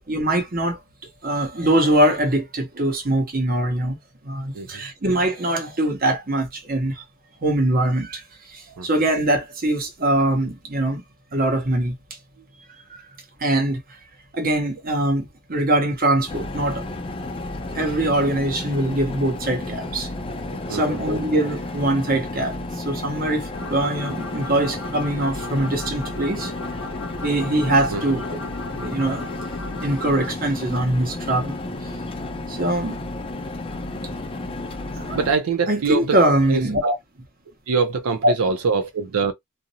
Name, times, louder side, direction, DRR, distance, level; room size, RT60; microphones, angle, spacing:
voice 1, 0.1-0.8 1.2-4.0 4.2-7.0 7.4-11.0 11.3-11.9 12.9-13.1 13.4-14.0 14.3-16.8 17.7-20.1 20.7-26.5 27.2-28.2 28.7-29.3 29.8-31.9 32.5-33.0 35.0-35.2 35.7-36.8 38.2-38.3, right 1 dB, 40° right, 0.9 m, -22 dB
sound 1, 16.3-35.3, left 2 dB, 25° left, 0.4 m, -32 dB
voice 2, 20.4-21.0 27.9-28.1 35.1-37.0 37.7-39.3, right 4 dB, 85° right, 0.5 m, -24 dB
sound 2, 23.5-30.3, left 3 dB, 75° left, 0.6 m, -37 dB
2.5 x 2.0 x 2.7 m
head